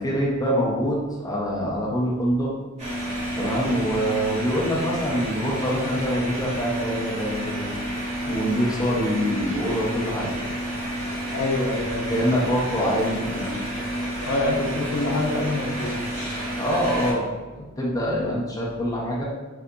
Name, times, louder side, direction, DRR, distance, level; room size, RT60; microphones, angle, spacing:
voice 1, 0.0-2.5 3.4-7.7 8.3-10.3 12.1-13.5 16.6-17.3 17.8-19.2, equal, 15° left, -5 dB, 0.6 m, -25 dB
sound 1, 2.8-17.1, right 1 dB, 30° right, 1.2 m, -30 dB
voice 2, 11.3-12.3 14.2-16.1, left 2 dB, 85° left, 0 dB, 0.5 m, -26 dB
3.7 x 2.4 x 2.2 m, 1.3 s
head